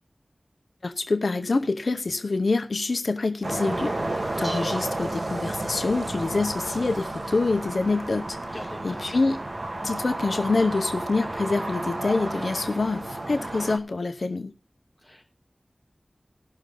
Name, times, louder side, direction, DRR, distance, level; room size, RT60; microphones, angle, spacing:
voice 1, 0.8-8.5 8.8-9.4 9.8-14.5, left 3 dB, 85° left, 8 dB, 0.8 m, -26 dB
sound 1, 3.4-13.8, right 2 dB, 55° right, 1.5 m, -32 dB
Dishes pots and pans, 4.0-11.4, equal, 20° right, 5.9 m, -49 dB
voice 2, 8.5-9.2 15.0-15.2, left 1 dB, 10° left, 0 dB, 4.0 m, -43 dB
17.5 x 6.7 x 3.8 m, 0.33 s
wide cardioid pair, 55°, 0 cm